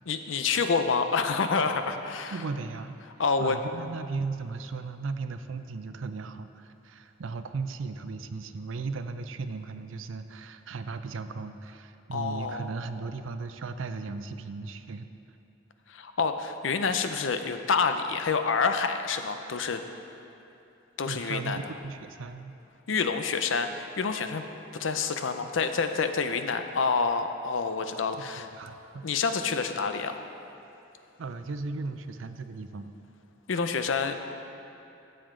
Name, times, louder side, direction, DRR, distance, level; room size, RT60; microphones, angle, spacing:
voice 1, 0.1-2.4 3.2-3.6 12.1-12.7 15.9-19.8 21.0-21.7 22.9-24.4 24.7-28.5 29.0-30.1 33.5-34.2, left 5 dB, 75° left, 8 dB, 0.6 m, -28 dB
voice 2, 2.3-3.0 3.4-15.1 21.1-22.5 28.4-29.0 31.2-32.9, right 4 dB, 85° right, 10 dB, 0.5 m, -36 dB
13.5 x 7.7 x 3.8 m, 2.8 s
head